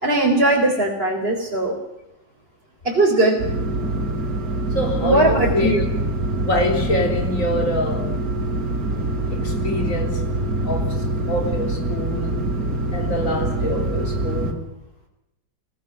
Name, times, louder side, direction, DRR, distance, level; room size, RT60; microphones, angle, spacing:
voice 1, 0.0-1.8 2.8-3.4 5.0-5.8, right 2 dB, 30° right, 4.3 m, -19 dB
sound 1, 3.4-14.5, right 1 dB, 55° right, 4.4 m, -24 dB
voice 2, 4.7-5.9 6.4-8.2 9.3-10.3 10.6-12.5 12.9-14.8, left 1 dB, 45° left, 4.2 m, -25 dB
24.5 x 17.5 x 9.5 m
omnidirectional pair, 1.9 m